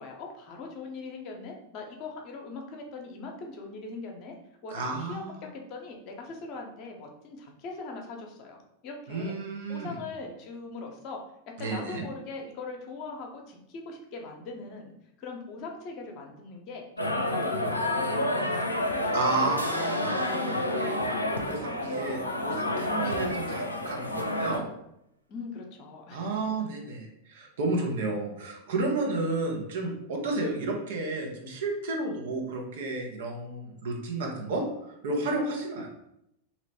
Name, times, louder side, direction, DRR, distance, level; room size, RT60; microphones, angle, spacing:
voice 1, 0.0-4.3 4.6-9.4 9.7-11.2 11.6-14.9 15.2-18.7 25.3-26.3, left 3 dB, 40° left, 2 dB, 0.8 m, -41 dB
voice 2, 4.7-5.4 9.1-10.0 11.6-12.0 19.1-20.9 21.4-24.7 26.1-35.9, right 2 dB, 55° right, 0 dB, 0.9 m, -32 dB
sound 1, 17.0-24.6, left 1 dB, 85° left, 0.5 m, -29 dB
sound 2, 19.6-23.1, right 2 dB, 85° right, 0.4 m, -44 dB
3.0 x 3.0 x 4.1 m, 0.80 s
figure-of-eight pair, 90°, 0 cm